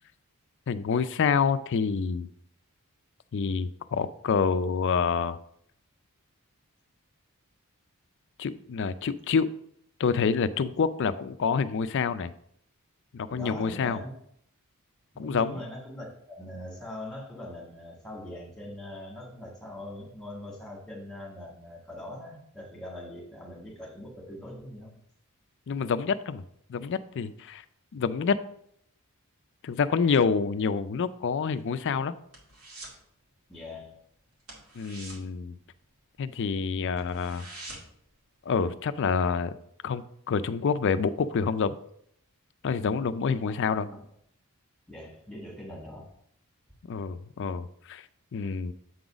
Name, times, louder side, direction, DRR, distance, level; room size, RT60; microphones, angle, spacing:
voice 1, 0.7-2.3 3.3-5.4 8.4-9.5 10.0-12.3 13.1-14.0 15.2-15.6 25.7-26.4 26.7-27.6 27.9-28.4 29.6-32.2 34.8-35.6 36.2-37.5 38.5-39.6 39.8-41.8 42.6-43.9 46.9-48.0 48.3-48.7, left 5 dB, 55° left, 13 dB, 0.4 m, -27 dB
voice 2, 13.3-14.1 15.1-25.0 33.5-34.0 43.8-44.0 44.9-46.1, left 1 dB, 5° left, -2 dB, 1.6 m, -42 dB
sound 1, 31.5-33.1 33.3-33.6 33.9-34.0 34.4-36.3 36.6-36.7 37.0-38.1 38.4-38.5, right 2 dB, 65° right, 2.3 m, -46 dB
7.8 x 3.9 x 4.8 m, 0.70 s
head